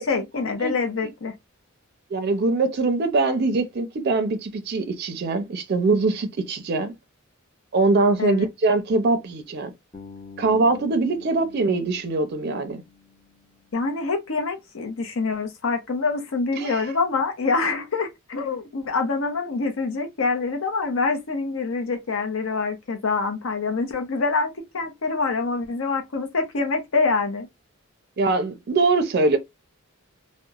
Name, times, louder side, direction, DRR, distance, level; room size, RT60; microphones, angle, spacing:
voice 1, 0.0-1.3 8.2-8.4 13.7-27.5, left 4 dB, 70° left, 0.6 m, -25 dB
voice 2, 2.1-6.9 7.7-9.7 10.4-12.8 16.5-16.8 28.2-29.4, right 3 dB, 50° right, 0.4 m, -22 dB
Bass guitar, 9.9-13.9, left 4 dB, 25° left, 0.6 m, -46 dB
2.9 x 2.1 x 2.3 m
head